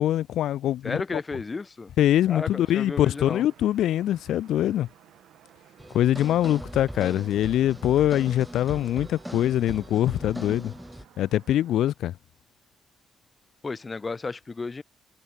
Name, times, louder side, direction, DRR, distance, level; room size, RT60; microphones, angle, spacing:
voice 1, 0.0-1.2 2.0-4.9 5.9-10.7 11.2-12.1, left 12 dB, 90° left, 0.9 m, -23 dB
voice 2, 0.8-1.9 2.3-3.4 13.6-14.8, left 4 dB, 25° left, 0.8 m, -33 dB
sound 1, 2.4-11.8, right 12 dB, 85° right, 7.5 m, -56 dB
sound 2, 5.8-11.1, equal, ahead, 1.1 m, -39 dB
cardioid pair, 110°, 0 cm